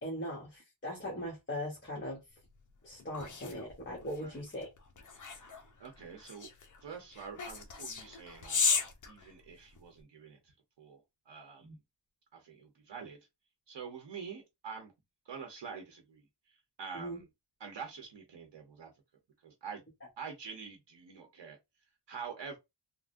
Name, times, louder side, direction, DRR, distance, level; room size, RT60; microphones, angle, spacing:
voice 1, 0.0-2.2 2.8-4.7 11.6-11.7 16.9-17.2, equal, 25° left, 1.0 m, -39 dB
sound 1, 2.5-10.0, left 5 dB, 40° left, 0.6 m, -36 dB
voice 2, 5.8-6.5 6.8-8.6 9.1-11.7 12.3-13.2 13.7-14.9 15.2-17.3 17.6-18.9 19.4-19.8 20.2-21.6 22.1-22.6, right 6 dB, 65° right, 0.9 m, -46 dB
3.5 x 2.1 x 2.5 m
wide cardioid pair, 150°, 47 cm